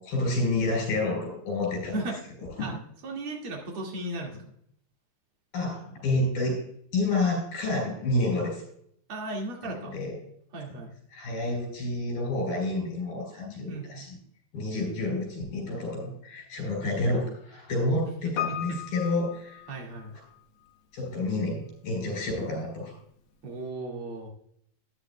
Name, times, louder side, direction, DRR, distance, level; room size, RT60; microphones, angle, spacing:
voice 1, 0.0-2.0 2.6-2.8 5.5-6.6 6.9-8.6 9.6-10.1 11.1-14.2 14.5-19.6 20.9-23.0, left 2 dB, 85° left, 1 dB, 6.6 m, -29 dB
voice 2, 3.0-4.4 9.1-10.0 10.5-10.9 13.7-14.0 16.8-16.9 18.5-18.8 19.7-20.1 23.4-24.3, right 2 dB, 40° right, 0 dB, 2.7 m, -36 dB
Piano, 18.4-20.4 20.7-20.8, left 11 dB, 70° left, 1.5 m, -36 dB
13.0 x 10.5 x 2.3 m, 0.67 s
omnidirectional pair, 4.1 m